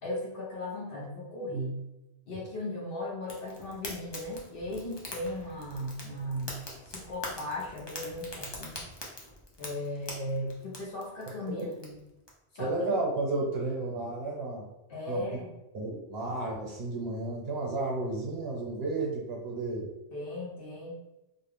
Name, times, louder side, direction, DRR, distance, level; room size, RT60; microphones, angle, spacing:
voice 1, 0.0-1.8 2.3-6.6 6.9-8.9 9.6-12.0 12.5-13.0 14.9-15.5 20.1-21.0, left 1 dB, 65° left, -4 dB, 0.8 m, -37 dB
Fire, 3.2-12.3, left 2 dB, 40° left, 0.4 m, -44 dB
voice 2, 12.6-14.7 15.1-15.2 15.7-19.9, right 2 dB, 70° right, -3 dB, 1.0 m, -32 dB
2.5 x 2.2 x 3.2 m, 0.95 s
omnidirectional pair, 1.1 m